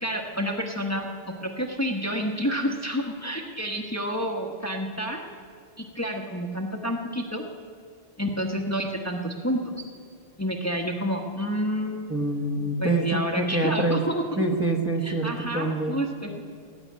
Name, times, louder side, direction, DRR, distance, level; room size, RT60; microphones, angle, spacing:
voice 1, 0.0-5.2 5.8-7.4 8.2-9.8 10.4-12.1 12.6-14.2 15.0-16.4, equal, 15° left, 1 dB, 1.1 m, -29 dB
voice 2, 12.1-14.0 14.4-16.0, right 2 dB, 15° right, 2 dB, 1.2 m, -26 dB
19.0 x 7.9 x 9.5 m, 2.3 s
omnidirectional pair, 1.0 m